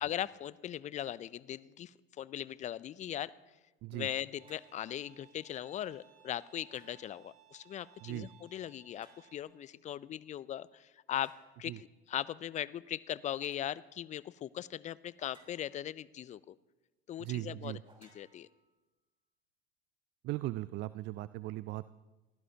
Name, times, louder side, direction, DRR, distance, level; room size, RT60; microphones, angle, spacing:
voice 1, 0.0-3.3 3.9-16.6 17.1-18.5, left 11 dB, 25° left, 20 dB, 0.4 m, -39 dB
sound 1, 4.4-4.8 6.7-7.3 8.9-9.5 11.2-11.5 13.4-13.7 15.2-15.9 17.8-19.0, right 2 dB, 15° right, 3.7 m, -64 dB
Bowed string instrument, 4.4-9.4, right 11 dB, 75° right, 2.3 m, -63 dB
voice 2, 17.2-17.8 20.2-21.9, right 17 dB, 35° right, 17 dB, 0.4 m, -38 dB
24.0 x 16.0 x 2.8 m, 1.1 s
hypercardioid pair, 80°, 31 cm